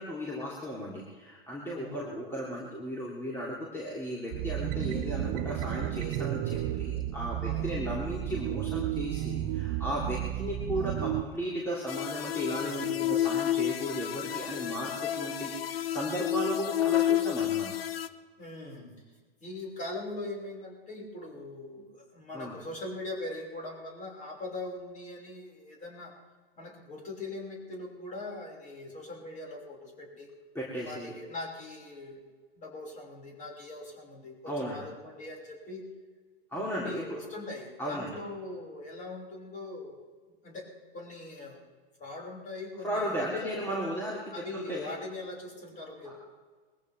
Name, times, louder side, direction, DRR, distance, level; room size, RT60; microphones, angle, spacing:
voice 1, 0.0-17.8 22.3-22.6 30.5-31.1 34.5-34.8 36.5-37.2 37.8-38.1 42.8-44.9 46.0-46.1, equal, 10° left, -5 dB, 3.1 m, -35 dB
voice 2, 1.7-2.1 7.4-7.8 10.7-11.1 12.7-12.9 18.4-18.9 19.4-26.1 26.6-30.3 30.8-32.2 32.5-35.8 36.5-40.0 40.4-40.7 40.9-41.6 42.0-43.7 44.3-46.1, left 2 dB, 25° left, -1 dB, 6.0 m, -41 dB
sound 1, 4.3-11.2, right 13 dB, 35° right, 0.8 m, -32 dB
sound 2, 11.9-18.1, left 12 dB, 70° left, 0.9 m, -30 dB
22.0 x 15.0 x 3.6 m, 1.4 s
hypercardioid pair, 105°, 30 cm